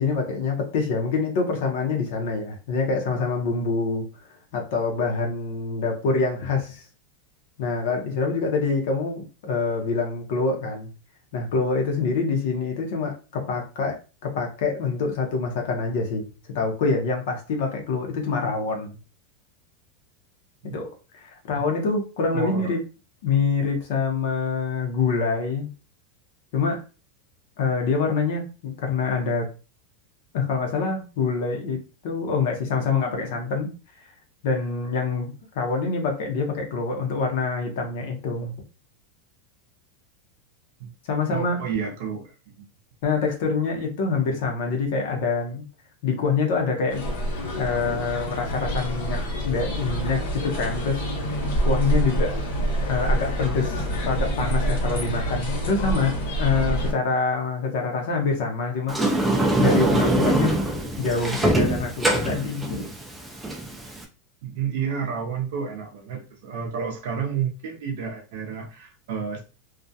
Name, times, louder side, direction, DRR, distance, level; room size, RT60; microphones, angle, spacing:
voice 1, 0.0-4.1 4.5-6.8 7.6-10.9 11.3-16.3 16.5-19.0 20.6-22.8 23.2-25.7 26.5-26.8 27.6-29.5 30.3-33.7 34.4-38.5 41.1-41.6 43.0-45.6 46.0-47.0 47.6-49.2 49.4-51.0 51.6-52.4 52.9-59.0 59.6-60.5 61.0-62.9, left 4 dB, 55° left, 2 dB, 0.6 m, -25 dB
voice 2, 22.3-22.8 40.8-40.9 41.3-42.7 64.4-69.4, right 7 dB, 55° right, 2 dB, 0.5 m, -30 dB
sound 1, 46.9-56.9, right 1 dB, 85° left, 0.9 m, -26 dB
Sliding door, 58.9-64.0, right 1 dB, 5° right, 0.3 m, -23 dB
2.3 x 2.1 x 2.6 m, 0.33 s
supercardioid pair, 175°, 0 cm